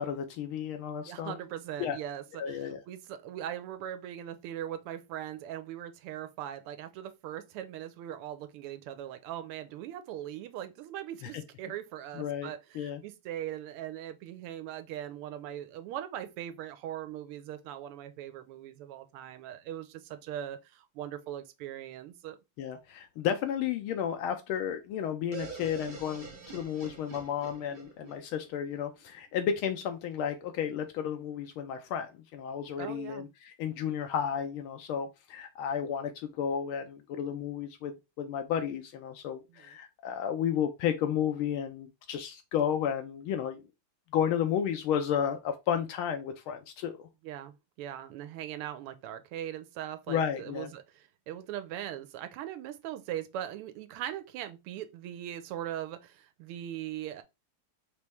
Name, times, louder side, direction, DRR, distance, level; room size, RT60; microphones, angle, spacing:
voice 1, 0.0-1.3 1.8-2.0 2.4-2.8 11.2-11.3 12.1-13.0 22.6-43.6 44.1-47.1 50.1-50.7, left 8 dB, 80° left, 1.4 m, -32 dB
voice 2, 1.1-22.4 32.8-33.3 39.5-39.7 47.2-57.2, right 11 dB, 90° right, 1.6 m, -40 dB
sound 1, 25.3-29.1, right 4 dB, 45° right, 0.6 m, -46 dB
4.3 x 3.0 x 3.4 m
omnidirectional pair, 2.4 m